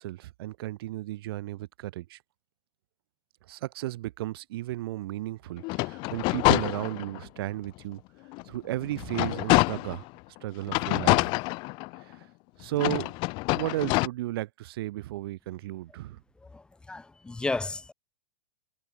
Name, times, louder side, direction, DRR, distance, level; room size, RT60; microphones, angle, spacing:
voice 1, 0.0-2.2 3.5-8.0 8.5-10.0 10.4-11.4 12.1-12.3 12.6-13.1 13.5-16.2, right 16 dB, 55° right, 4.3 m, -34 dB
Metal Clanging, 5.6-7.3 7.8-7.9 8.3-10.1 10.7-12.2 12.7-14.1, left 26 dB, 35° left, 1.1 m, -26 dB
voice 2, 16.9-17.9, left 3 dB, 5° left, 2.0 m, -32 dB
supercardioid pair, 160°, 15 cm